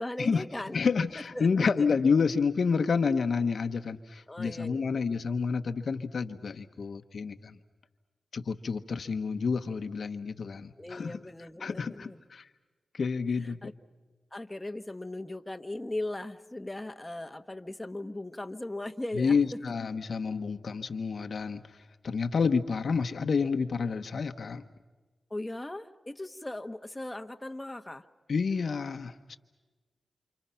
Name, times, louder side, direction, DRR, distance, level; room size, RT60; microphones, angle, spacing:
voice 1, 0.0-0.8 1.3-1.9 4.3-5.0 6.4-6.5 10.8-12.2 13.4-13.7 14.3-19.4 25.3-28.0, left 1 dB, 15° left, 6 dB, 1.2 m, -38 dB
voice 2, 0.7-7.6 8.3-11.2 11.6-12.5 12.9-13.7 19.1-21.8 22.0-24.6 28.3-29.4, left 5 dB, 65° left, 7 dB, 1.1 m, -29 dB
29.5 x 27.5 x 5.8 m, 1.3 s
cardioid pair, 75°, 0 cm